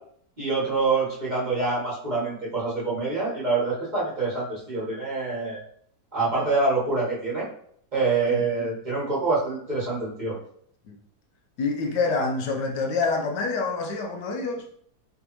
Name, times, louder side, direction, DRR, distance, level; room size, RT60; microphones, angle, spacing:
voice 1, 0.4-5.6 6.1-7.5 7.9-10.4, right 3 dB, 30° right, -7 dB, 1.2 m, -26 dB
voice 2, 11.6-14.6, left 4 dB, 80° left, 2 dB, 1.3 m, -27 dB
3.8 x 3.4 x 2.9 m, 0.64 s
omnidirectional pair, 1.8 m